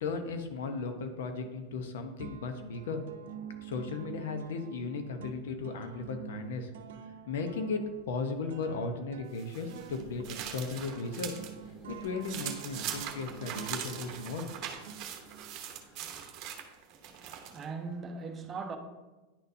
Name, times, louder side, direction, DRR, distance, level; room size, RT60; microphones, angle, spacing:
voice 1, 0.0-3.0 3.6-6.7 7.3-7.8 8.1-11.4 11.9-14.5, left 4 dB, 80° left, 0.8 m, -36 dB
sound 1, 1.4-1.9 2.2-15.6, right 8 dB, 80° right, 0.6 m, -48 dB
sound 2, 9.4-11.5 11.9-17.7, right 9 dB, 45° right, 0.9 m, -41 dB
sound 3, 9.8-16.1, right 1 dB, 5° left, 1.4 m, -55 dB
voice 2, 17.0-18.8, right 4 dB, 25° right, 0.7 m, -40 dB
10.0 x 4.1 x 2.7 m
supercardioid pair, 130°, 0 cm